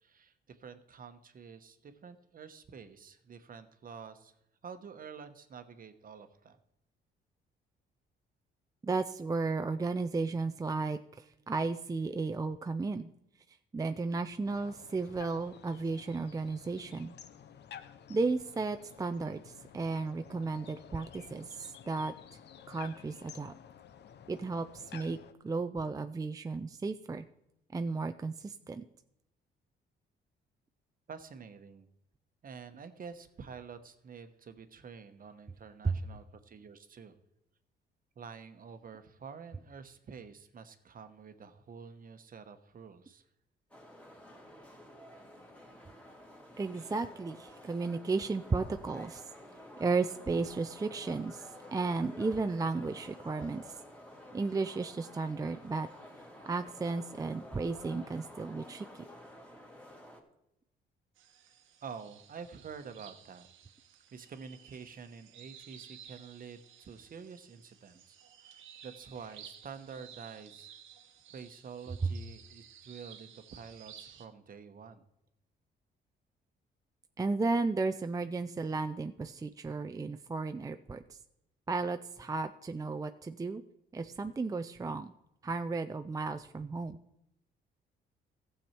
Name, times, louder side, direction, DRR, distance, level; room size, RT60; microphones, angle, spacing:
voice 1, 0.0-4.3 4.6-6.6 31.1-31.9 32.4-37.2 38.2-43.2 61.8-63.5 64.1-70.8 71.3-75.0, right 6 dB, 45° right, 9 dB, 1.1 m, -48 dB
voice 2, 8.8-13.1 13.7-17.1 18.1-22.1 22.7-23.5 24.3-25.2 25.4-27.2 27.7-28.8 35.8-36.0 46.6-49.3 49.8-53.8 54.3-55.9 56.5-58.9 77.2-81.2 81.7-83.6 83.9-85.1 85.4-87.0, right 3 dB, 20° right, 9 dB, 0.4 m, -34 dB
sound 1, 14.4-25.3, left 8 dB, 60° left, 0.8 m, -52 dB
sound 2, 43.7-60.2, left 1 dB, 5° left, 2.4 m, -51 dB
sound 3, 61.2-74.3, right 9 dB, 85° right, 1.1 m, -55 dB
15.0 x 7.1 x 4.5 m, 0.84 s
cardioid pair, 90°, 20 cm